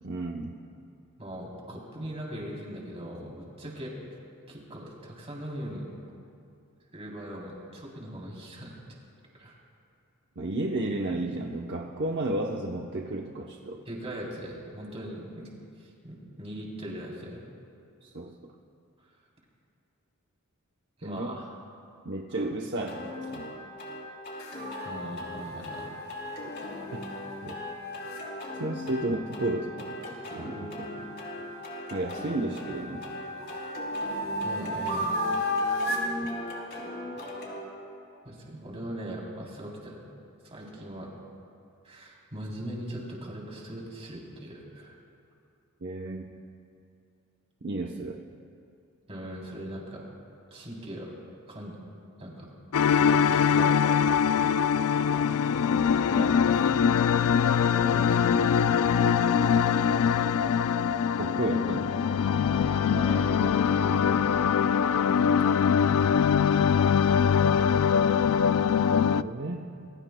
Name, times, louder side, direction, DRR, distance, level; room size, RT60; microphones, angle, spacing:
voice 1, 0.0-0.5 10.4-13.8 18.0-18.5 21.0-21.4 22.0-23.5 27.4-27.6 28.5-30.0 30.3-31.1 31.9-33.0 45.8-46.3 47.6-48.2 54.4-54.5 61.2-62.0 68.9-69.7, right 2 dB, 55° right, -1 dB, 0.9 m, -33 dB
voice 2, 1.2-4.0 4.5-5.9 6.9-8.8 9.4-9.6 13.9-15.5 15.8-17.4 19.0-19.1 21.0-21.4 24.8-25.9 34.4-35.3 38.2-40.0 40.4-41.1 41.8-44.9 49.1-50.1 50.5-51.1 51.5-51.8 52.2-52.5 52.9-53.8 54.4-54.6 56.1-56.8 57.5-59.0 62.8-64.2 64.9-65.9, right 1 dB, 30° right, -3 dB, 3.5 m, -40 dB
sound 1, 22.9-37.6, left 1 dB, 50° left, 3.4 m, -39 dB
sound 2, 24.4-28.2 31.2-32.4 32.9-36.1, left 1 dB, 70° left, 2.9 m, -34 dB
sound 3, 52.7-69.2, left 7 dB, 85° left, 0.4 m, -23 dB
26.5 x 22.5 x 2.3 m, 2.5 s
head